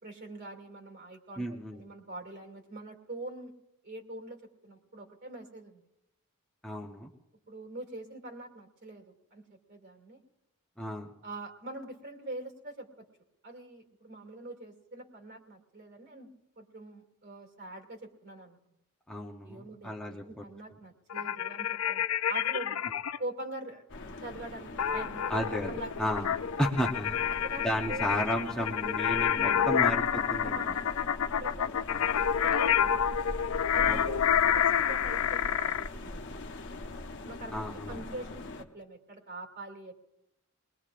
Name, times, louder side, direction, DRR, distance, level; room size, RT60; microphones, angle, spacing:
voice 1, 0.0-1.5 1.7-3.5 3.8-5.8 7.5-10.2 11.2-13.1 13.4-16.3 16.6-18.6 19.4-22.8 23.2-23.8 24.2-25.3 25.7-26.1 27.4-28.2 28.5-29.0 29.4-31.7 32.4-33.0 33.7-36.6 37.2-37.6 37.9-40.0, right 2 dB, 50° right, 4 dB, 2.4 m, -44 dB
voice 2, 1.4-1.8 6.6-7.1 10.8-11.1 19.1-20.4 25.3-27.2 27.6-30.8 31.9-32.0 33.8-34.1 37.5-38.0, equal, 5° left, -1 dB, 0.8 m, -33 dB
sound 1, 21.1-23.2 24.8-35.9, left 9 dB, 70° left, 0.4 m, -28 dB
sound 2, 23.9-38.6, left 2 dB, 55° left, 1.0 m, -42 dB
22.5 x 20.0 x 2.5 m, 0.90 s
head